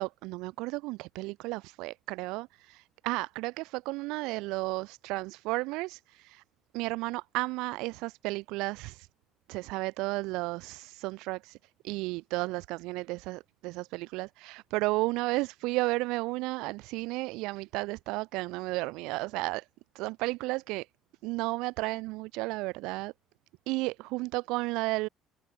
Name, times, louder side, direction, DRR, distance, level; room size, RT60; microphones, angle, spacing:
voice 1, 0.0-2.5 3.0-6.0 6.7-8.9 9.5-11.4 11.8-19.6 20.0-20.8 21.2-23.1 23.7-25.1, right 22 dB, 85° right, 4.7 m, -33 dB
cardioid pair, 140°, 0 cm